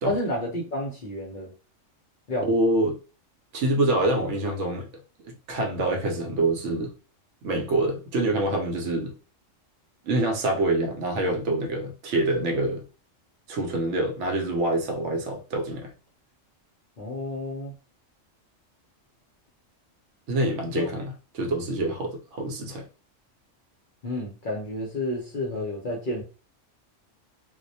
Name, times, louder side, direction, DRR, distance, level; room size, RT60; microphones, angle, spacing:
voice 1, 0.0-1.5 2.3-2.5 17.0-17.7 20.8-20.9 24.0-26.2, left 1 dB, 55° left, 0.6 m, -30 dB
voice 2, 2.4-3.0 3.5-4.9 5.2-6.9 7.4-9.1 10.0-12.8 13.5-15.9 20.3-22.9, right 2 dB, 70° right, 0.9 m, -26 dB
2.2 x 2.1 x 2.6 m
omnidirectional pair, 1.3 m